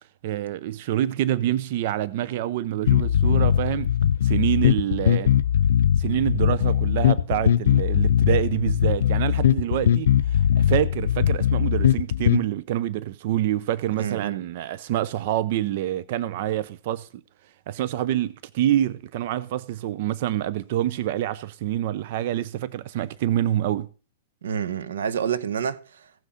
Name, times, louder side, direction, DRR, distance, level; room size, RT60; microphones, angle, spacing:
voice 1, 0.2-5.3 6.0-17.1 17.7-23.9, right 12 dB, 55° right, 0.6 m, -26 dB
sound 1, 2.9-12.4, left 10 dB, 80° left, 0.4 m, -20 dB
voice 2, 14.0-14.4 24.4-26.1, right 8 dB, 90° right, 1.0 m, -28 dB
16.0 x 6.3 x 5.6 m
hypercardioid pair, 145°, 0 cm